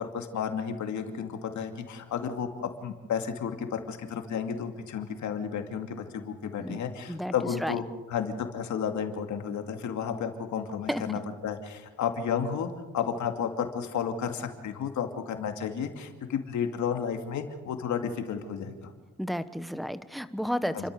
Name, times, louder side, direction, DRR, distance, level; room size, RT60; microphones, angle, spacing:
voice 1, 0.0-18.9 20.7-20.8, left 7 dB, 70° left, 5 dB, 2.5 m, -32 dB
voice 2, 19.2-20.9, equal, ahead, 12 dB, 1.1 m, -32 dB
29.5 x 13.0 x 6.8 m, 1.3 s
cardioid pair, 90°, 30 cm